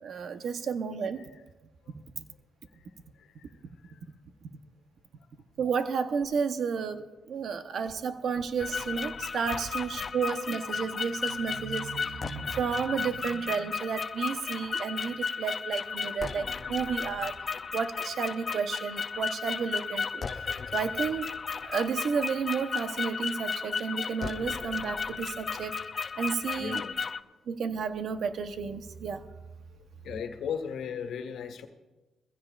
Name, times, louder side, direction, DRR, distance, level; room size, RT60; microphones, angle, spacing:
voice 1, 0.0-1.2 2.1-2.2 5.6-17.3 17.7-20.3 20.7-21.3 21.6-25.8 26.2-26.8 27.5-29.3, right 6 dB, 60° right, 8 dB, 0.9 m, -32 dB
voice 2, 3.1-4.1 10.0-10.1 26.6-27.0 30.0-31.7, left 7 dB, 75° left, 6 dB, 1.5 m, -38 dB
sound 1, 8.6-27.2, left 5 dB, 40° left, 0.6 m, -34 dB
23.0 x 15.5 x 2.5 m, 1.2 s
cardioid pair, 90°, 0 cm